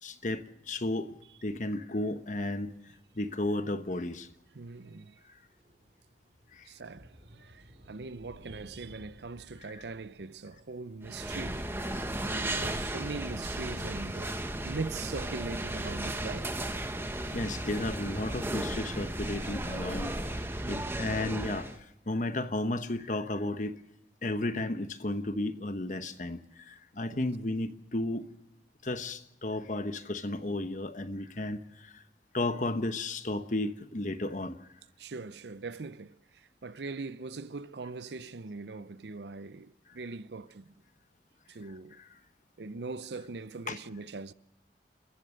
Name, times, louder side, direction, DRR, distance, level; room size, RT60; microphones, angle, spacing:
voice 1, 0.0-1.1 1.4-2.7 3.2-4.3 6.5-6.7 9.7-9.8 11.9-12.0 17.3-23.8 24.2-28.3 28.8-32.0 32.3-34.6 42.0-42.1 43.7-43.8, left 2 dB, 45° left, 1.1 m, -33 dB
sound 1, 2.0-18.8, equal, 40° right, 4.4 m, -60 dB
voice 2, 4.5-5.2 6.7-11.6 12.2-16.6 20.7-20.9 27.1-27.2 35.0-40.7 41.5-42.0 42.6-44.3, right 3 dB, 80° right, 0.6 m, -41 dB
sound 2, 11.0-21.8, right 1 dB, 15° right, 1.1 m, -35 dB
30.0 x 14.5 x 6.4 m
head